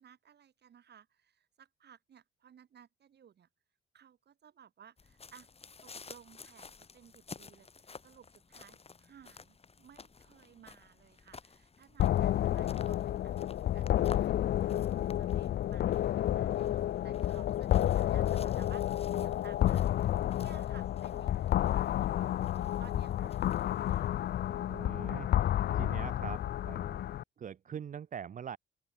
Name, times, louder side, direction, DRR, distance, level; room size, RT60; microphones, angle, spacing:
voice 1, 0.0-3.5 3.9-5.5 5.8-14.8 15.2-20.0 20.3-24.1 24.4-25.0, right 8 dB, 55° right, 4.9 m, -58 dB
sound 1, 5.0-24.1, left 5 dB, 30° left, 2.2 m, -54 dB
sound 2, 12.0-27.2, left 12 dB, 55° left, 0.5 m, -30 dB
voice 2, 24.7-25.3 25.7-27.0 27.4-28.6, right 8 dB, 40° right, 0.6 m, -43 dB
open air
cardioid pair, 90°, 20 cm